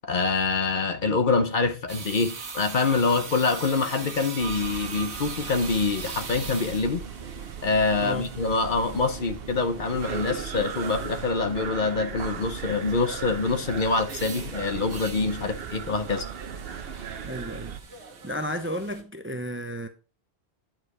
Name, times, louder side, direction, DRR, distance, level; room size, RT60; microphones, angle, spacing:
voice 1, 0.0-7.1 7.6-16.3, left 4 dB, 55° left, 0.9 m, -25 dB
sound 1, 1.9-19.0, right 5 dB, 85° right, 1.5 m, -42 dB
sound 2, 3.6-11.9, right 1 dB, 35° left, 1.6 m, -49 dB
sound 3, 4.4-17.8, right 7 dB, 70° right, 0.9 m, -38 dB
voice 2, 17.2-17.7 18.2-19.9, equal, 15° right, 0.6 m, -32 dB
9.2 x 4.9 x 4.7 m
omnidirectional pair, 1.1 m